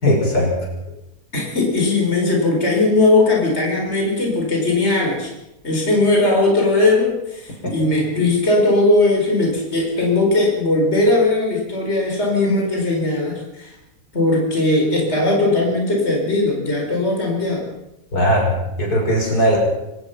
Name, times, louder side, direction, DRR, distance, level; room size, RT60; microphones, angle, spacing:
voice 1, 0.0-0.5 7.6-7.7 18.1-19.6, equal, 75° left, 0 dB, 6.4 m, -18 dB
voice 2, 1.3-5.3 5.6-13.7 14.1-17.7, left 2 dB, 45° left, 0 dB, 5.0 m, -18 dB
24.5 x 18.5 x 5.8 m, 0.90 s
omnidirectional pair, 1.6 m